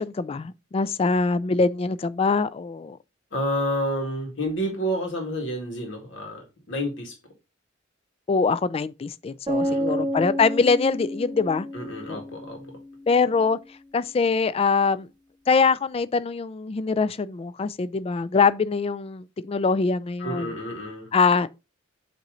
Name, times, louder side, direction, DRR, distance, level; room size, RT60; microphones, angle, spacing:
voice 1, 0.0-3.0 8.3-11.7 12.1-12.2 13.1-13.6 13.9-15.1 15.5-20.5 21.1-21.5, left 4 dB, 30° left, 0.3 m, -23 dB
voice 2, 3.3-7.1 9.6-10.1 11.7-12.6 20.2-21.1, equal, 70° left, 2.1 m, -30 dB
sound 1, 9.5-13.4, equal, 25° right, 1.1 m, -30 dB
8.2 x 3.1 x 3.8 m
head